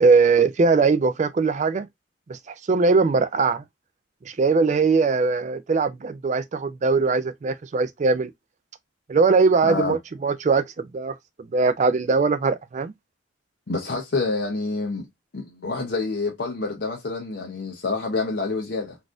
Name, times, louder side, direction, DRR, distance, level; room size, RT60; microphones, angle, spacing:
voice 1, 0.0-1.9 2.3-3.6 4.3-8.3 9.1-11.1 11.5-12.9, right 4 dB, 40° right, 0.3 m, -21 dB
voice 2, 9.6-10.0 13.7-15.1 15.3-19.0, left 3 dB, 60° left, 0.6 m, -27 dB
4.0 x 2.5 x 2.4 m
head